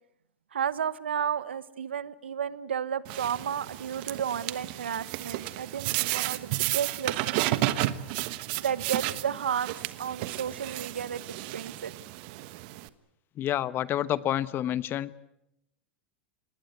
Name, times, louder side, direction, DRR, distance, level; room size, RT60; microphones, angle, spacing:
voice 1, 0.5-7.4 8.6-11.9, right 8 dB, 85° right, 17 dB, 1.0 m, -32 dB
sound 1, 3.0-12.9, right 17 dB, 60° right, 1.2 m, -32 dB
voice 2, 13.4-15.1, left 12 dB, 40° left, 16 dB, 1.1 m, -28 dB
26.0 x 19.5 x 8.1 m, 0.82 s
hypercardioid pair, 100°, 6 cm